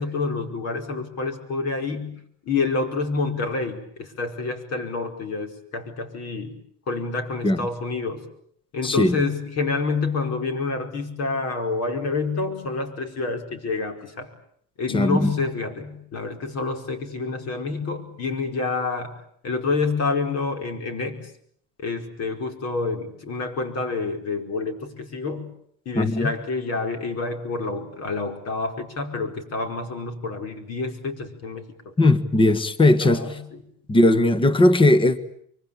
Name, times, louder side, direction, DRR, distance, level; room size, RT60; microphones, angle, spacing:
voice 1, 0.0-2.2 2.4-6.5 6.9-8.2 8.7-14.3 14.8-19.2 19.4-21.2 21.8-25.5 25.8-32.1 33.0-33.6, left 3 dB, 45° left, 5.0 m, -28 dB
voice 2, 8.8-9.2 14.9-15.3 25.9-26.3 32.0-33.4 33.9-35.2, left 1 dB, 15° left, 1.5 m, -18 dB
25.0 x 24.0 x 8.9 m
cardioid pair, 130°, 35 cm